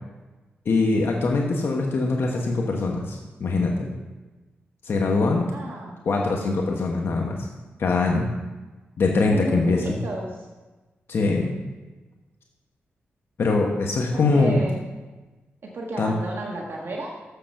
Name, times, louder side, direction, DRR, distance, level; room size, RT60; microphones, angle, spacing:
voice 1, 0.6-3.9 4.8-5.5 6.0-7.4 7.8-8.3 9.0-10.0 11.1-11.5 13.4-14.6 16.0-16.1, left 3 dB, 65° left, 0 dB, 1.1 m, -22 dB
voice 2, 5.5-6.0 9.3-10.5 14.1-14.8 15.7-17.1, right 2 dB, 60° right, -1 dB, 1.4 m, -33 dB
7.4 x 6.8 x 6.5 m, 1.2 s
cardioid pair, 80°, 4 cm